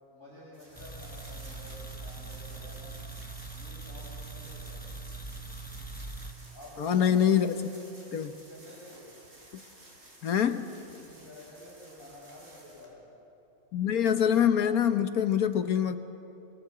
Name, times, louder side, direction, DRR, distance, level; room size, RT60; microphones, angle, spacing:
voice 1, 0.1-3.0 3.5-4.8 6.5-7.3 8.2-9.1 11.0-13.0, left 1 dB, 35° left, -8 dB, 6.4 m, -50 dB
sound 1, 0.5-12.9, right 1 dB, 55° right, 5.9 m, -53 dB
sound 2, 0.8-6.3, right 3 dB, 5° left, 1.1 m, -42 dB
voice 2, 6.8-7.5 8.1-8.3 10.2-10.7 13.7-16.0, left 9 dB, 75° left, 8 dB, 1.5 m, -25 dB
29.0 x 21.5 x 7.9 m, 2.8 s
omnidirectional pair, 1.6 m